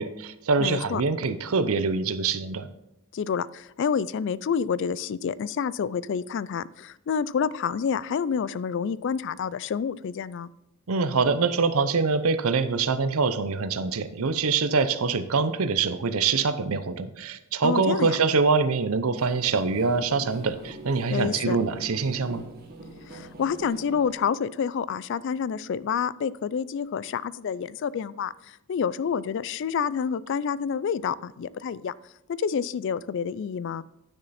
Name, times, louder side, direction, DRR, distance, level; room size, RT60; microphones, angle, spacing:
voice 1, 0.0-2.7 10.9-22.4, right 4 dB, 75° right, 12 dB, 0.7 m, -24 dB
voice 2, 0.6-1.0 3.1-10.5 17.6-18.2 21.1-21.6 23.1-31.9 32.3-33.8, left 6 dB, 55° left, 19 dB, 0.3 m, -28 dB
sound 1, 19.1-24.1, right 1 dB, 45° right, 1.8 m, -43 dB
10.5 x 6.4 x 4.2 m, 0.90 s
head